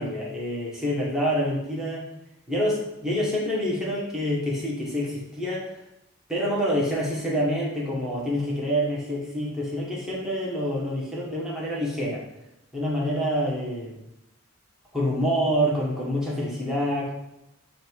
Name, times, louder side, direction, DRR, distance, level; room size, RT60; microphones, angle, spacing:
voice 1, 0.0-2.1 2.5-5.7 6.3-12.2 12.7-14.0 14.9-17.1, equal, ahead, -6 dB, 1.3 m, -27 dB
7.6 x 2.7 x 4.6 m, 0.88 s
head